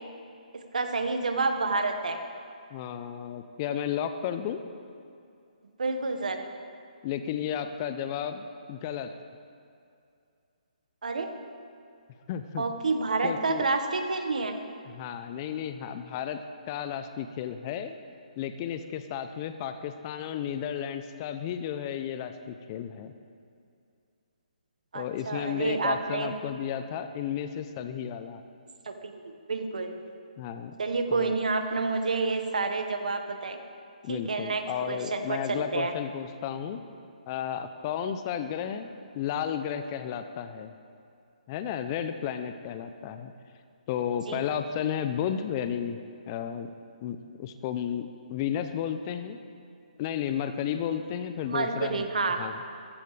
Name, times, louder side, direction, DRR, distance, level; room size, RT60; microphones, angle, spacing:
voice 1, 0.5-2.2 5.8-6.5 11.0-11.3 12.6-14.5 24.9-26.3 28.9-29.9 30.8-33.6 34.1-35.9 44.3-44.4 51.5-52.4, right 3 dB, 70° right, 5 dB, 1.7 m, -29 dB
voice 2, 2.7-4.6 7.0-8.4 8.7-9.2 12.3-12.6 13.2-13.7 14.8-18.0 18.4-23.1 24.9-28.4 30.4-30.7 31.1-31.3 34.0-36.8 37.3-40.7 41.5-43.3 43.9-46.0 46.3-46.7 47.0-49.4 50.0-52.0 52.4-52.5, left 9 dB, 30° left, 9 dB, 0.8 m, -33 dB
22.0 x 14.5 x 3.5 m, 2.4 s
figure-of-eight pair, 140°, 4 cm